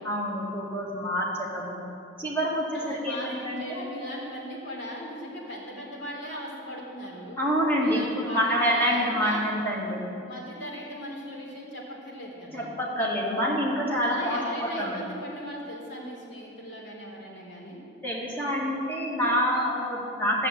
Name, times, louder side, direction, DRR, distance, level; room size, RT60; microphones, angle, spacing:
voice 1, 0.0-1.8 2.2-3.8 7.4-10.0 12.5-15.0 18.0-20.5, equal, 10° left, -4 dB, 2.0 m, -27 dB
voice 2, 2.7-7.4 7.8-9.4 10.2-12.7 14.0-17.8, equal, 75° left, -4 dB, 3.8 m, -38 dB
14.0 x 6.6 x 8.3 m, 2.6 s
head